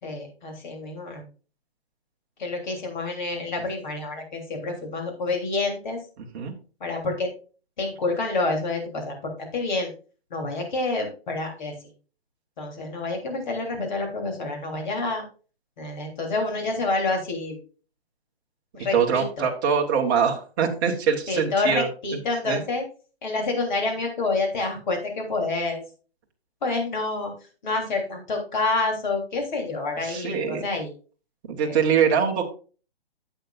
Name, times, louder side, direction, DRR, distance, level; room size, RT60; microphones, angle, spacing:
voice 1, 0.0-1.2 2.4-6.0 6.8-7.3 7.8-9.1 9.5-9.9 10.3-11.7 12.6-15.2 15.8-17.6 18.7-19.2 21.3-22.8 23.2-25.8 26.6-27.3 27.6-30.9 31.6-31.8, left 3 dB, 45° left, 1 dB, 3.4 m, -28 dB
voice 2, 6.2-6.5 18.9-21.9 22.5-22.6 30.0-30.6 31.5-32.4, right 7 dB, 20° right, 0 dB, 1.2 m, -23 dB
11.0 x 8.0 x 2.5 m, 0.36 s
hypercardioid pair, 165°, 31 cm